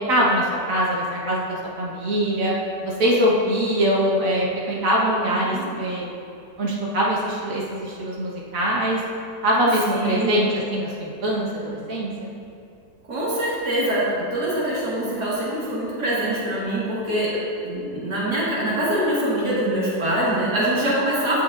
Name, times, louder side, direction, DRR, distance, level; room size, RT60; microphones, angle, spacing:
voice 1, 0.1-2.5 2.9-6.1 6.6-9.0 9.4-12.1 20.7-20.8, equal, 55° right, -4 dB, 1.8 m, -23 dB
voice 2, 5.2-5.7 9.9-10.3 13.1-21.4, right 1 dB, 85° right, -7 dB, 2.6 m, -24 dB
14.0 x 6.5 x 2.6 m, 2.6 s
omnidirectional pair, 1.7 m